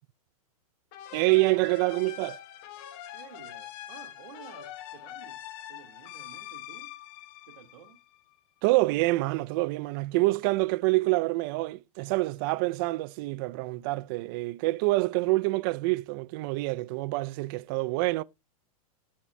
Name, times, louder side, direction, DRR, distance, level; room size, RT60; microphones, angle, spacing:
sound 1, 0.9-8.3, left 12 dB, 40° left, 0.9 m, -44 dB
voice 1, 1.1-2.4 8.6-18.2, right 22 dB, 35° right, 0.4 m, -26 dB
voice 2, 3.1-5.4 5.7-6.9 7.5-8.0, right 9 dB, 80° right, 1.7 m, -52 dB
12.0 x 4.3 x 3.3 m
supercardioid pair, 160°, 19 cm